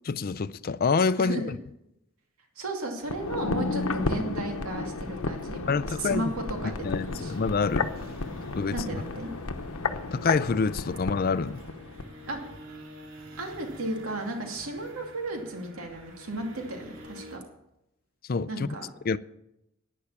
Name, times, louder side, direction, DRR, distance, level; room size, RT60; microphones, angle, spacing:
voice 1, 0.0-1.5 5.7-6.2 6.8-7.9 8.5-8.8 10.1-11.6 18.3-18.8 19.1-19.2, left 4 dB, 45° left, 0.4 m, -27 dB
voice 2, 1.2-1.5 2.6-7.4 8.7-9.3 12.2-12.4 13.4-17.4 18.5-18.9, right 1 dB, 80° right, 2.5 m, -34 dB
sound 1, 3.0-12.1 12.4-12.5, left 3 dB, 85° left, 0.9 m, -33 dB
sound 2, 3.0-17.4, right 1 dB, 65° right, 2.5 m, -49 dB
11.5 x 10.0 x 7.2 m
head